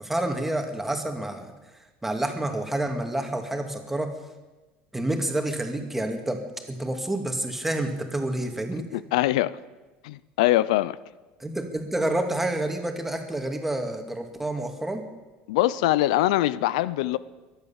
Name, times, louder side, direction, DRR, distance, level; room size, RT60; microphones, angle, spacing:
voice 1, 0.0-1.5 2.0-4.1 4.9-6.4 6.7-8.9 11.4-15.1, right 1 dB, 5° right, 2.1 m, -28 dB
voice 2, 8.9-9.5 10.0-11.0 15.5-17.2, left 15 dB, 90° left, 0.5 m, -23 dB
22.5 x 8.2 x 7.2 m
supercardioid pair, 120°, 4 cm